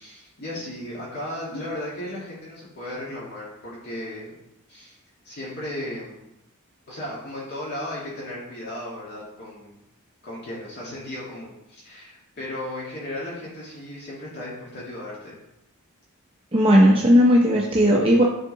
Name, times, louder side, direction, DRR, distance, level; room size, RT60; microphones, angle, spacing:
voice 1, 0.0-4.3 4.7-5.0 5.2-6.3 6.9-9.7 10.2-15.4, left 1 dB, 50° left, -7 dB, 1.7 m, -35 dB
voice 2, 16.5-18.2, equal, 25° right, -2 dB, 0.7 m, -16 dB
9.3 x 3.7 x 3.7 m, 0.84 s
head